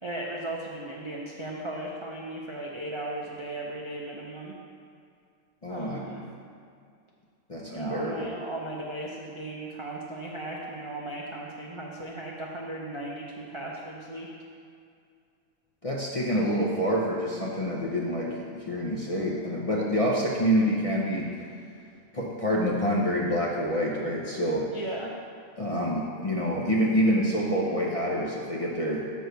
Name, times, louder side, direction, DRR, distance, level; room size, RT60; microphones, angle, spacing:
voice 1, 0.0-4.5 5.7-6.2 7.7-14.3 24.7-25.1, right 1 dB, 35° right, -3 dB, 0.4 m, -36 dB
voice 2, 5.6-6.0 7.5-8.3 15.8-21.3 22.1-24.7 25.6-29.1, equal, 35° left, -4 dB, 0.6 m, -27 dB
6.3 x 4.7 x 6.7 m, 2.3 s
omnidirectional pair, 1.5 m